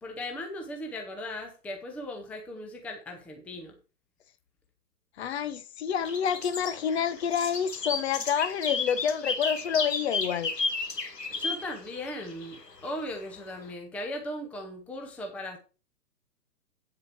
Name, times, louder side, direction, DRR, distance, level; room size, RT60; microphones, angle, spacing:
voice 1, 0.0-3.8 11.3-15.6, left 1 dB, 5° left, 0.7 m, -38 dB
voice 2, 5.2-10.5, left 8 dB, 40° left, 0.9 m, -28 dB
sound 1, 6.0-12.9, left 4 dB, 85° left, 2.1 m, -33 dB
8.6 x 7.6 x 4.6 m
figure-of-eight pair, 130°, 47 cm